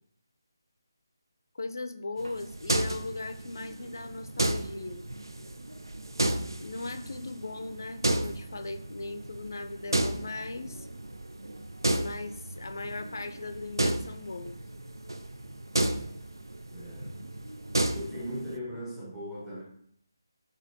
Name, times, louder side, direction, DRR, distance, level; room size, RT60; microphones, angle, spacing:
voice 1, 1.5-5.0 6.6-10.9 11.9-14.6, left 3 dB, 55° left, 8 dB, 0.5 m, -38 dB
sound 1, 2.2-18.6, right 1 dB, 75° right, 0.4 m, -33 dB
voice 2, 16.7-17.2 17.9-19.6, equal, 5° right, -8 dB, 0.8 m, -38 dB
5.4 x 3.6 x 2.6 m, 0.66 s
figure-of-eight pair, 150°, 2 cm